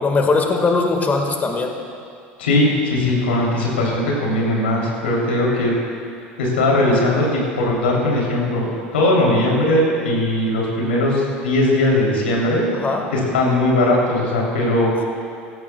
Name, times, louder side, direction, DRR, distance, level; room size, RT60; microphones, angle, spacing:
voice 1, 0.0-1.7 12.8-13.0 14.9-15.0, left 3 dB, 30° left, 3 dB, 1.8 m, -20 dB
voice 2, 2.4-5.7 6.4-8.7 8.9-12.7 13.1-14.9, left 1 dB, 85° left, -3 dB, 3.3 m, -19 dB
16.0 x 14.5 x 2.3 m, 2.5 s
hypercardioid pair, 80°, 6 cm